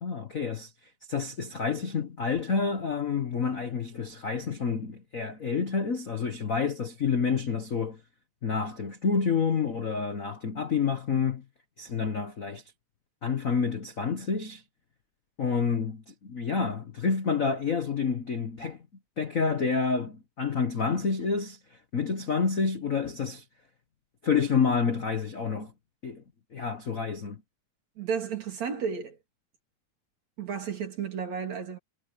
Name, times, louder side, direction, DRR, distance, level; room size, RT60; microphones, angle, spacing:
voice 1, 0.0-8.0 8.4-11.4 11.8-12.6 13.2-14.6 15.4-18.8 19.2-23.4 24.2-25.7 26.0-26.2 26.5-27.4, left 5 dB, 80° left, 0.7 m, -29 dB
voice 2, 28.0-29.2 30.4-31.8, right 6 dB, 60° right, 4.4 m, -32 dB
omnidirectional pair, 3.6 m